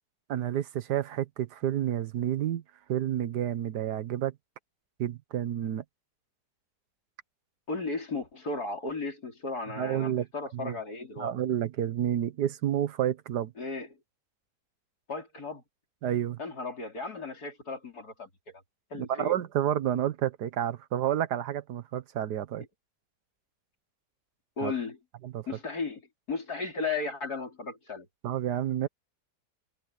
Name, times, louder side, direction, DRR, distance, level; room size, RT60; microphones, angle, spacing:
voice 1, 0.3-2.6 2.9-4.3 5.0-5.8 9.8-10.3 10.5-10.7 11.2-13.5 16.0-16.4 18.9-22.6 24.6-24.7 25.2-25.5 28.2-28.9, right 11 dB, 85° right, 1.5 m, -30 dB
voice 2, 7.7-11.3 13.6-14.0 15.1-15.6 16.4-18.6 18.9-19.3 24.6-25.0 25.5-28.1, left 3 dB, 70° left, 4.7 m, -35 dB
omnidirectional pair, 1.7 m